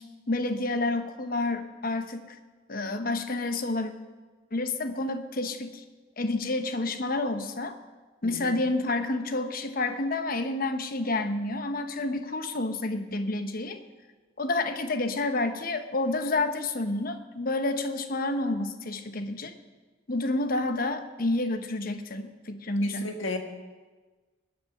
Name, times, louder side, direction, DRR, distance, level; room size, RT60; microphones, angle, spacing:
voice 1, 0.0-2.2 2.7-3.9 4.5-5.8 6.2-7.8 8.2-13.8 14.4-19.5 20.1-23.1, left 2 dB, 45° left, 9 dB, 0.9 m, -29 dB
voice 2, 8.2-8.6 22.8-23.4, left 3 dB, 85° left, 5 dB, 1.6 m, -34 dB
20.5 x 7.8 x 6.0 m, 1.3 s
head